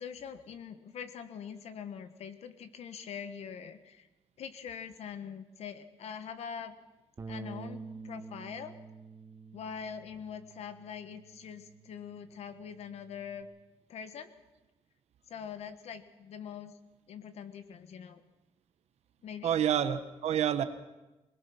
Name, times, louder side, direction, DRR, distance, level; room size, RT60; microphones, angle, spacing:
voice 1, 0.0-4.1 4.4-6.8 7.3-8.8 9.5-13.5 13.9-14.3 15.3-16.7 17.1-18.2 19.2-19.5, left 7 dB, 75° left, 9 dB, 1.5 m, -43 dB
Bass guitar, 7.2-13.4, right 4 dB, 30° right, 1.1 m, -48 dB
voice 2, 19.4-20.6, right 9 dB, 85° right, 10 dB, 1.3 m, -28 dB
22.0 x 20.0 x 6.0 m, 1.0 s
wide cardioid pair, 170°, 11 cm